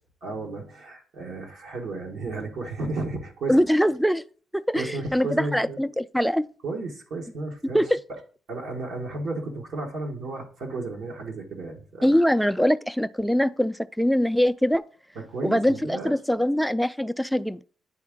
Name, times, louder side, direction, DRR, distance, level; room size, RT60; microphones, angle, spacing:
voice 1, 0.2-3.6 4.7-5.8 6.6-7.8 8.5-12.2 15.1-16.2, right 3 dB, 70° right, 1.4 m, -33 dB
voice 2, 3.5-4.2 4.5-6.5 7.6-8.0 12.0-14.8 15.4-17.6, equal, ahead, 0.3 m, -23 dB
9.2 x 3.6 x 3.7 m
cardioid pair, 90°, 0 cm